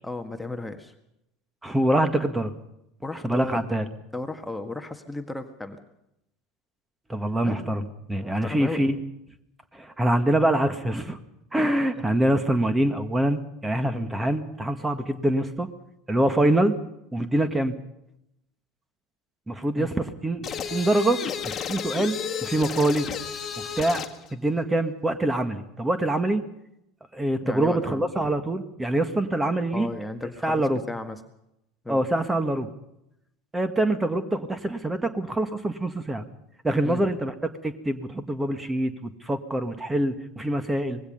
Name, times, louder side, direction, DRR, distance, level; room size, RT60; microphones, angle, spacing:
voice 1, 0.0-0.9 3.0-3.7 4.1-5.8 7.4-7.8 8.2-8.9 19.8-19.9 27.4-28.1 29.7-31.2 31.8-32.0 36.8-37.1, left 2 dB, 5° left, 6 dB, 1.7 m, -34 dB
voice 2, 1.6-2.5 3.2-3.9 7.1-9.0 9.7-11.2 11.5-15.7 16.1-16.7 17.1-17.7 19.5-23.1 23.8-26.4 27.1-29.9 30.4-30.8 31.9-32.7 33.5-36.3 36.6-37.3 37.6-41.0, right 1 dB, 10° right, 10 dB, 1.9 m, -25 dB
sound 1, 20.4-24.2, left 7 dB, 30° left, 1.8 m, -32 dB
25.0 x 20.5 x 5.5 m, 0.83 s
figure-of-eight pair, 75°, 0 cm